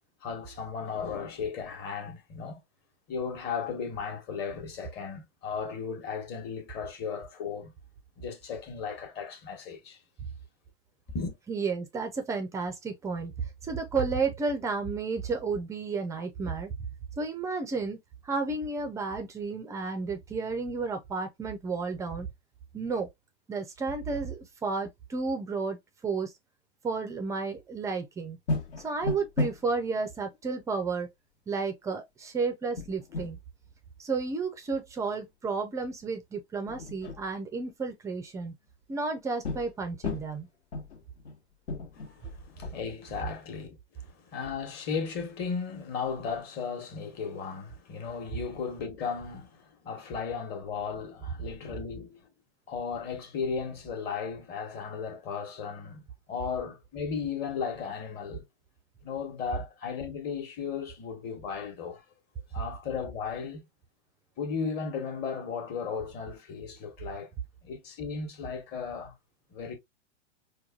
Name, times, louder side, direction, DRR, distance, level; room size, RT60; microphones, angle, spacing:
voice 1, 0.2-2.6 3.1-7.7 8.2-10.0 11.1-11.4 41.9-52.3 52.7-56.0 56.3-58.4 59.0-62.0 62.5-63.6 64.4-67.3 67.6-69.1 69.5-69.7, left 6 dB, 30° left, 1.1 m, -35 dB
voice 2, 11.5-13.3 13.7-16.7 17.2-18.0 18.2-22.3 22.7-23.1 23.5-25.8 26.0-26.3 26.8-28.4 28.8-31.1 31.5-33.4 34.0-38.5 38.9-40.5, right 4 dB, 10° right, 0.4 m, -32 dB
sound 1, 28.5-29.6 29.9-30.0 30.3-30.4 32.8-33.3 35.9-36.1 36.7-37.3 39.4-39.7 40.0-40.4 40.7-41.4 41.7-42.7, left 2 dB, 70° left, 1.1 m, -34 dB
4.7 x 2.2 x 2.4 m
hypercardioid pair, 115°, 34 cm